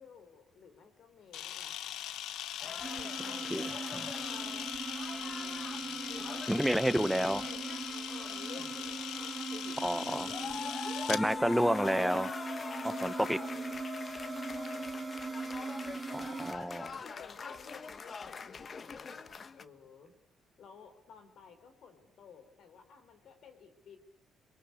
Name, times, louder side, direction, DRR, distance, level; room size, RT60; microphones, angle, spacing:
voice 1, 0.0-1.9 2.6-4.1 5.1-6.4 7.2-7.7 8.1-10.7 13.2-13.8 14.5-15.1 16.2-16.5 16.8-20.1 20.6-24.0, left 5 dB, 65° left, 8 dB, 4.6 m, -54 dB
Camera, 1.3-11.2, left 11 dB, 85° left, 1.0 m, -40 dB
sound 1, 2.6-6.6 7.0-8.7 9.2-10.0 10.3-19.6, left 5 dB, 45° left, 1.2 m, -43 dB
sound 2, 2.8-16.5, right 4 dB, 25° right, 3.2 m, -41 dB
voice 2, 6.5-7.4 9.8-10.3 11.1-12.3 12.8-13.4 16.1-16.9, equal, 5° right, 15 dB, 1.0 m, -30 dB
28.0 x 23.0 x 8.5 m, 0.71 s
cardioid pair, 90°, 0 cm